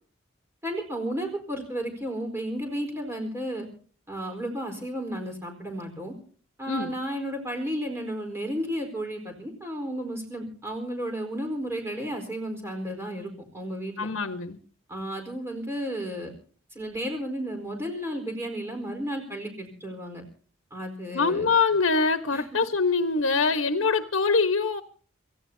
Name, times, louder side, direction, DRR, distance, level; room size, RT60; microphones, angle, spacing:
voice 1, 0.6-3.7 4.1-6.1 6.6-14.1 14.9-16.3 16.7-20.2 20.7-21.5 22.3-22.4, equal, 10° right, 3 dB, 4.4 m, -33 dB
voice 2, 14.0-14.6 21.1-24.8, left 4 dB, 70° left, 10 dB, 1.3 m, -24 dB
27.0 x 16.0 x 2.8 m, 0.43 s
head